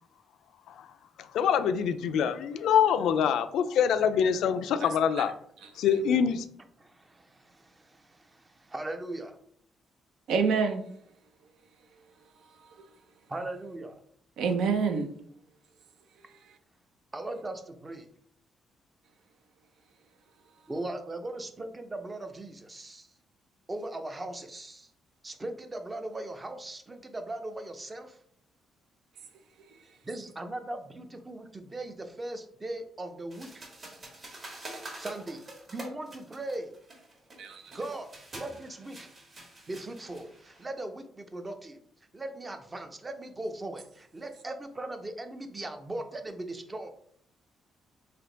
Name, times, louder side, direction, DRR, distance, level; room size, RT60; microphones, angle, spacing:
voice 1, 1.3-5.3 5.8-6.4, left 8 dB, 80° left, 0.3 m, -25 dB
voice 2, 6.8-9.4 13.3-13.9 17.1-18.1 20.7-23.1 23.7-24.9 25.2-28.2 30.0-33.6 35.0-36.7 37.7-39.1 39.7-41.8 42.1-46.9, right 2 dB, 25° right, 0.6 m, -39 dB
voice 3, 10.3-10.8 12.8-12.9 14.4-15.1 37.4-37.8, right 5 dB, 80° right, 0.6 m, -27 dB
sound 1, 33.3-40.6, right 1 dB, 40° right, 1.6 m, -46 dB
3.4 x 2.7 x 3.8 m
cardioid pair, 90°, 0 cm